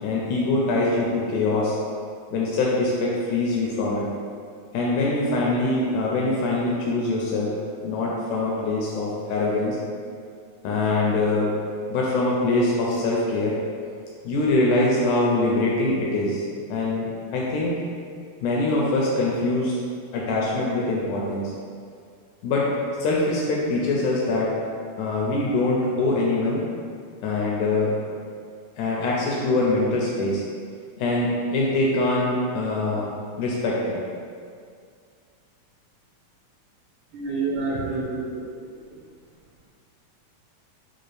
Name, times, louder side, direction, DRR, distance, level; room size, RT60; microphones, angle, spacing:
voice 1, 0.0-1.8 2.3-4.1 4.7-7.5 7.8-9.8 10.6-11.5 11.9-13.6 14.3-16.4 16.7-17.8 18.4-19.8 20.1-21.5 22.4-22.7 23.0-24.5 25.0-26.6 27.2-27.9 28.8-30.4 31.0-34.0, left 2 dB, 85° left, -4 dB, 1.7 m, -23 dB
voice 2, 37.1-38.4, right 3 dB, 75° right, -7 dB, 2.0 m, -27 dB
6.2 x 2.4 x 3.2 m, 2.2 s
omnidirectional pair, 3.9 m